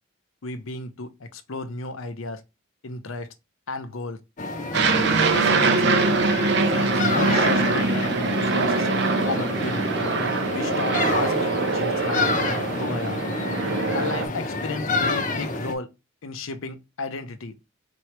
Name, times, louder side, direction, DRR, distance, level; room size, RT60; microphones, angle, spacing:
voice 1, 0.4-2.4 2.8-3.3 3.7-4.2 5.0-5.7 6.6-8.9 9.3-9.9 10.5-12.3 12.8-13.2 13.9-15.9 16.2-17.5, left 3 dB, 75° left, 0.7 m, -33 dB
sound 1, 4.4-15.8, left 2 dB, 40° left, 0.7 m, -29 dB
Aircraft, 4.7-14.3, right 3 dB, 55° right, 0.7 m, -23 dB
4.4 x 3.0 x 3.2 m
head